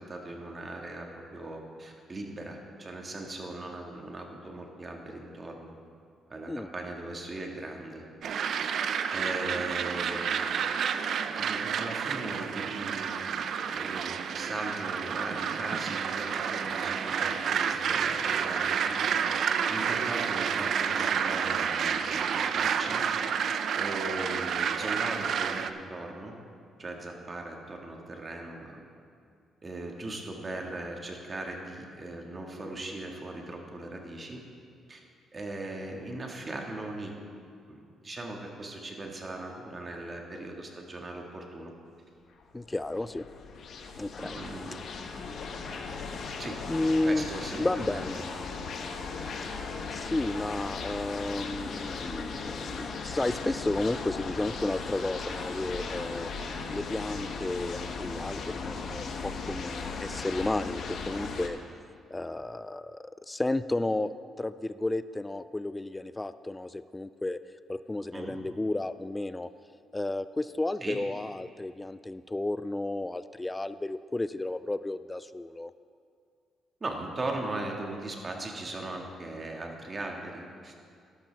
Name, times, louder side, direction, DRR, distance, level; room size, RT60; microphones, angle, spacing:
voice 1, 0.0-5.7 6.3-8.0 9.1-10.8 11.3-13.1 13.7-23.0 23.7-26.3 26.8-28.8 29.6-34.4 34.9-35.0 35.3-37.1 37.7-41.7 44.2-44.8 46.4-46.6 47.0-48.0 68.1-68.4 70.8-71.0 76.8-80.7, right 2 dB, 30° right, 1 dB, 1.7 m, -39 dB
sound 1, 8.2-25.7, right 7 dB, 65° right, 0.5 m, -30 dB
sound 2, 42.4-61.5, left 4 dB, 65° left, 1.0 m, -38 dB
voice 2, 42.5-43.2 44.0-44.4 46.7-47.3 47.6-48.2 49.9-56.3 56.7-61.6 62.1-64.1 64.4-67.4 67.7-69.5 69.9-75.7, left 2 dB, 15° left, 13 dB, 0.3 m, -32 dB
sound 3, 44.1-61.4, left 3 dB, 40° left, 0.9 m, -45 dB
13.0 x 12.0 x 3.4 m, 2.3 s
cardioid pair, 90°, 0 cm